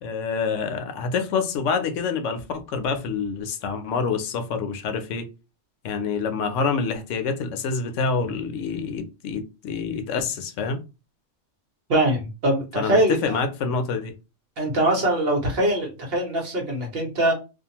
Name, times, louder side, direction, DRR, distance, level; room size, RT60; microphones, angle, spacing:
voice 1, 0.0-5.3 5.8-10.8 12.8-14.1, left 5 dB, 85° left, 0.9 m, -27 dB
voice 2, 11.9-13.4 14.6-17.3, right 1 dB, 55° right, 1.2 m, -22 dB
2.6 x 2.4 x 2.8 m
omnidirectional pair, 1.2 m